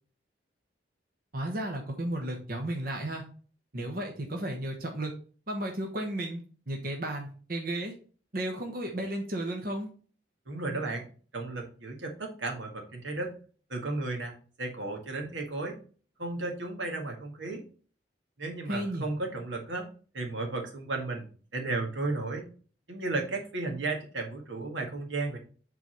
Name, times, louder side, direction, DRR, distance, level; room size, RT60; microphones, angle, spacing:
voice 1, 1.3-3.2 3.7-5.1 5.5-6.4 6.7-7.9 8.3-9.9 18.7-19.1, right 1 dB, 50° right, 2 dB, 1.1 m, -33 dB
voice 2, 10.5-11.1 11.3-13.3 13.7-15.8 16.2-17.6 18.4-19.9 20.1-22.5 22.9-25.4, right 2 dB, 85° right, 2 dB, 1.8 m, -34 dB
7.9 x 4.0 x 4.5 m, 0.41 s
head